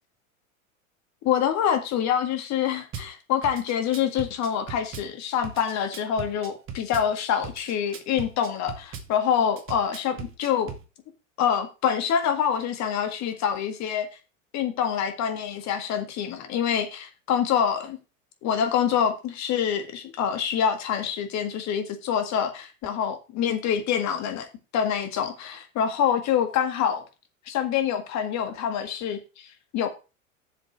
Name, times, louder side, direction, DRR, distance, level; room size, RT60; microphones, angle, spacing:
voice 1, 1.2-10.7 11.4-14.1 14.5-18.0 18.4-24.5 24.7-27.0 27.5-29.9, left 8 dB, 40° left, 1.9 m, -26 dB
Drum kit / Bass drum, 2.9-3.1 3.4-5.1 5.4-7.1 7.4-9.1 9.6-10.8, right 6 dB, 30° right, 1.7 m, -38 dB
7.3 x 5.0 x 6.8 m
hypercardioid pair, 95°, 41 cm